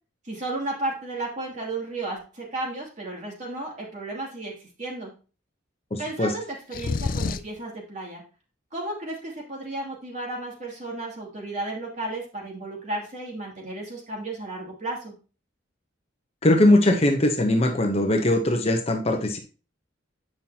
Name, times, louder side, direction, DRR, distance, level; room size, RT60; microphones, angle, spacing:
voice 1, 0.2-5.1 6.0-8.2 8.7-15.1, right 2 dB, 40° right, -1 dB, 2.7 m, -33 dB
voice 2, 5.9-6.3 16.4-19.4, left 1 dB, 35° left, 3 dB, 0.9 m, -20 dB
sound 1, 6.7-7.6, left 4 dB, 50° left, 0.4 m, -28 dB
9.1 x 5.6 x 2.9 m, 0.34 s
head